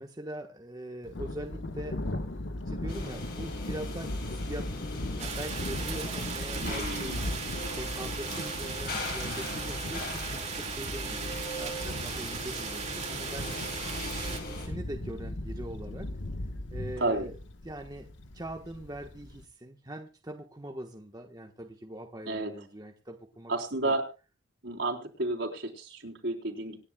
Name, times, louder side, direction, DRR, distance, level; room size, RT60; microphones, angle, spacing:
voice 1, 0.0-2.0 2.6-7.2 7.7-11.3 11.6-13.5 14.3-16.1 16.7-17.4 17.6-18.1 18.3-23.5 23.8-23.9, right 1 dB, 20° right, 2 dB, 1.3 m, -42 dB
Thunder, 1.0-19.5, left 1 dB, 70° left, 1.3 m, -38 dB
sound 1, 2.9-14.7, left 2 dB, 55° left, 6.1 m, -40 dB
sound 2, 5.2-14.4, right 6 dB, 35° right, 2.2 m, -38 dB
voice 2, 6.6-7.3 17.0-17.3 22.2-22.5 23.5-24.1 24.6-26.8, right 2 dB, 65° right, 0 dB, 3.8 m, -31 dB
26.0 x 10.5 x 2.3 m, 0.31 s
head